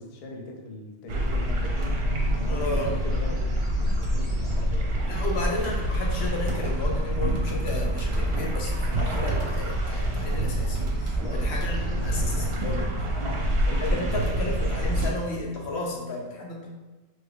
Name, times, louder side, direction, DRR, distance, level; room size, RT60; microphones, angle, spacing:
voice 1, 0.0-5.4 11.2-11.5 13.1-14.3, left 2 dB, 55° left, 1 dB, 0.4 m, -40 dB
sound 1, 1.1-15.1, right 1 dB, 70° right, 0.8 m, -26 dB
sound 2, 1.2-15.8, left 1 dB, 5° left, 0.6 m, -48 dB
voice 2, 2.5-3.0 5.1-10.8 11.3-12.9 13.8-16.7, left 2 dB, 80° left, -1 dB, 0.9 m, -33 dB
3.2 x 2.1 x 3.5 m, 1.2 s
omnidirectional pair, 1.1 m